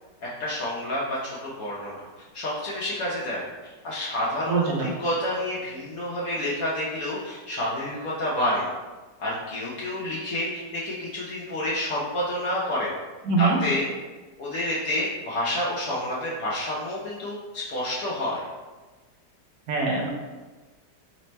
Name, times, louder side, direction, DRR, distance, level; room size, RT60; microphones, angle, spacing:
voice 1, 0.2-2.0 2.3-8.7 9.2-12.9 13.4-13.9 14.4-18.4, left 1 dB, 65° left, -7 dB, 1.0 m, -29 dB
voice 2, 4.5-4.9 13.2-13.6 19.7-20.1, right 4 dB, 75° right, -1 dB, 1.0 m, -23 dB
3.3 x 2.0 x 4.2 m, 1.3 s
omnidirectional pair, 1.9 m